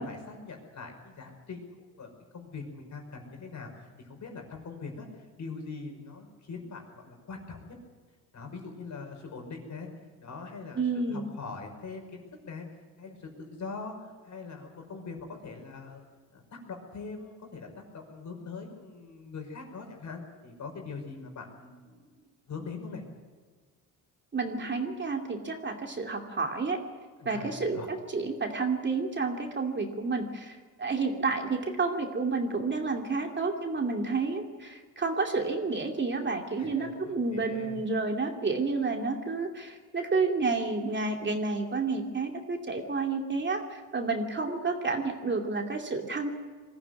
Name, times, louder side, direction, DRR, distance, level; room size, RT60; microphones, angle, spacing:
voice 1, 0.0-3.7 4.0-7.8 8.3-9.9 10.2-12.7 13.0-16.1 16.3-23.0 27.2-27.9 36.6-37.8, left 4 dB, 50° left, 3 dB, 5.5 m, -42 dB
voice 2, 10.7-11.3 24.3-26.8 27.2-46.3, right 4 dB, 30° right, 3 dB, 2.5 m, -30 dB
21.0 x 14.5 x 9.6 m, 1.5 s
cardioid pair, 95°, 38 cm